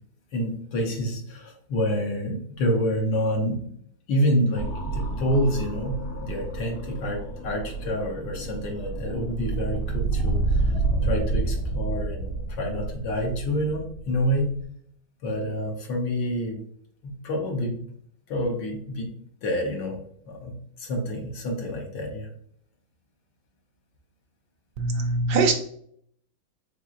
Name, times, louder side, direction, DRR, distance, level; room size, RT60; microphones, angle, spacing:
voice 1, 0.3-3.7 4.1-10.7 11.0-14.5 15.2-16.6 17.0-17.8 18.3-19.1 19.4-20.0 20.2-22.3, equal, 65° left, 1 dB, 1.5 m, -28 dB
sound 1, 4.5-14.6, right 3 dB, 85° left, 1.8 m, -29 dB
voice 2, 24.8-25.5, right 3 dB, 75° right, 3 dB, 1.1 m, -22 dB
4.5 x 3.8 x 2.4 m, 0.65 s
omnidirectional pair, 2.2 m